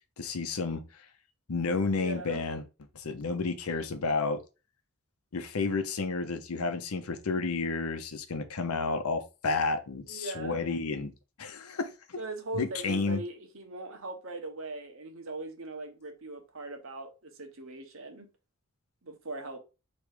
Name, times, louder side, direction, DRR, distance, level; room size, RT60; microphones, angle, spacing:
voice 1, 0.2-0.8 1.5-2.6 2.9-4.4 5.3-11.1 11.4-12.2 12.5-13.2, left 4 dB, 90° left, 0.8 m, -31 dB
voice 2, 2.0-2.4 10.1-10.6 12.2-18.3 19.0-19.6, right 2 dB, 65° right, 1.0 m, -40 dB
3.4 x 3.1 x 4.8 m
head